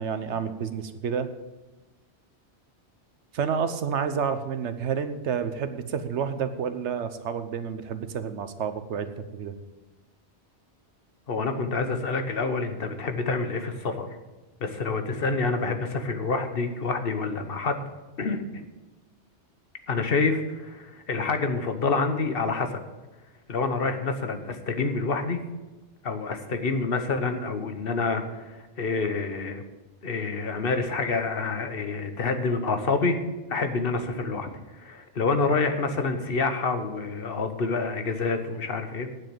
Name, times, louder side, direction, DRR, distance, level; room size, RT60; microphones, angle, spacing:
voice 1, 0.0-1.3 3.3-9.6, right 7 dB, 80° right, 10 dB, 1.2 m, -29 dB
voice 2, 11.3-14.2 14.6-17.8 18.2-18.6 19.9-22.8 23.5-25.4 26.0-29.6 30.0-33.2 33.5-39.1, left 4 dB, 55° left, 7 dB, 1.3 m, -27 dB
9.4 x 7.6 x 7.7 m, 1.1 s
omnidirectional pair, 1.2 m